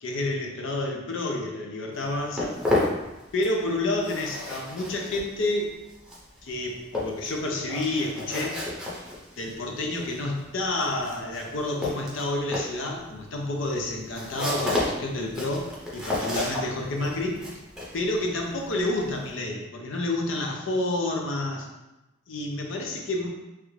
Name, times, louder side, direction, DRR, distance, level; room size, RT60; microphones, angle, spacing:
voice 1, 0.0-2.6 3.3-5.8 6.4-8.6 9.4-17.4 17.9-21.7 22.3-23.3, left 2 dB, 70° left, 1 dB, 0.6 m, -29 dB
Walk footsteps, 1.9-3.7 3.9-19.3, left 2 dB, 5° right, 0.7 m, -32 dB
3.2 x 2.4 x 3.1 m, 0.98 s
head